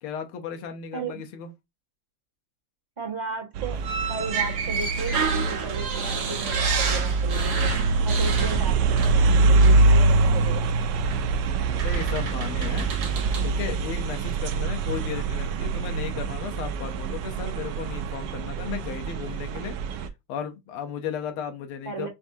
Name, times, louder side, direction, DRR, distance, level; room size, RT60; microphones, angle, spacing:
voice 1, 0.0-1.5 11.7-12.9 13.4-22.1, left 8 dB, 85° left, 1.7 m, -35 dB
voice 2, 0.9-1.3 3.0-7.7 8.0-10.9 21.8-22.1, right 4 dB, 20° right, 1.5 m, -35 dB
sound 1, 3.5-20.1, right 3 dB, 70° right, 1.1 m, -24 dB
sound 2, 3.8-9.3 9.6-9.8 11.0-11.2 11.8-13.5, right 6 dB, 55° right, 1.4 m, -30 dB
5.7 x 2.7 x 2.7 m
omnidirectional pair, 2.3 m